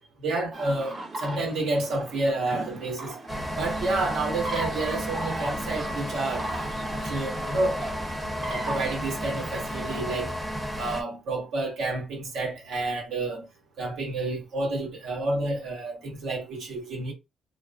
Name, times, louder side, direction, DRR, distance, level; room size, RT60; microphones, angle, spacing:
voice 1, 0.2-3.1 3.5-6.5 6.9-7.8 8.5-10.3 10.8-13.5 13.8-17.1, right 2 dB, 80° right, 1.5 m, -29 dB
sound 1, 0.5-10.0, right 1 dB, 40° right, 1.0 m, -38 dB
sound 2, 3.3-11.0, equal, 5° right, 0.9 m, -33 dB
3.5 x 2.0 x 2.5 m
cardioid pair, 90°, 0 cm